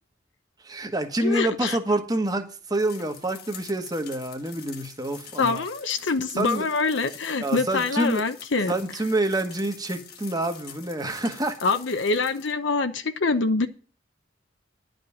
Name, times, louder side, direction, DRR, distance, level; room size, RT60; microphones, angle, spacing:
voice 1, 0.6-5.6 6.3-6.7 7.4-8.2 8.7-11.6, right 1 dB, 20° right, 1.2 m, -27 dB
voice 2, 1.2-1.8 5.4-8.7 11.6-13.7, left 4 dB, 75° left, 0.8 m, -25 dB
sound 1, 2.7-12.5, left 8 dB, 55° left, 1.3 m, -46 dB
11.0 x 5.2 x 8.4 m
head